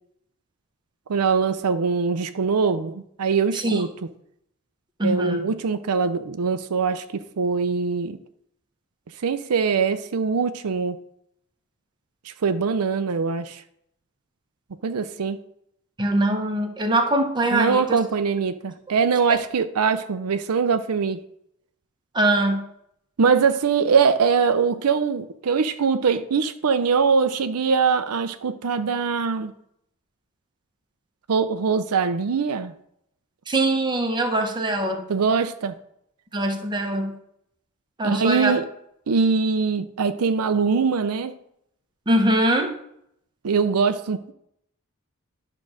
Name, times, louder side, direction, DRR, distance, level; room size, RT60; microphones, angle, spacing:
voice 1, 1.1-3.9 5.0-8.2 9.2-11.0 12.2-13.6 14.8-15.4 17.5-21.2 23.2-29.5 31.3-32.7 35.1-35.7 38.0-38.6 39.1-41.3 43.4-44.3, right 5 dB, 80° right, 10 dB, 0.5 m, -22 dB
voice 2, 5.0-5.5 16.0-18.0 22.1-22.6 33.5-35.0 36.3-37.1 38.0-38.5 42.1-42.8, right 1 dB, 20° right, 4 dB, 1.0 m, -22 dB
10.5 x 3.8 x 6.2 m, 0.74 s
head